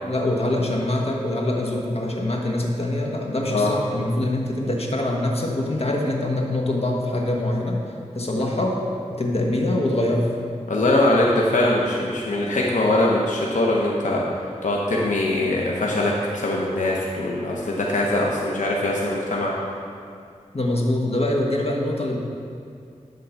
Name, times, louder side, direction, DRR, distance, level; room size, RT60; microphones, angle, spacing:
voice 1, 0.1-7.8 8.1-8.8 9.1-10.3 20.5-22.2, left 1 dB, 55° left, -1 dB, 1.3 m, -24 dB
voice 2, 10.7-14.2 14.6-19.5, left 1 dB, 85° left, -3 dB, 0.9 m, -22 dB
11.5 x 3.8 x 5.8 m, 2.4 s
wide cardioid pair, 60°, 13 cm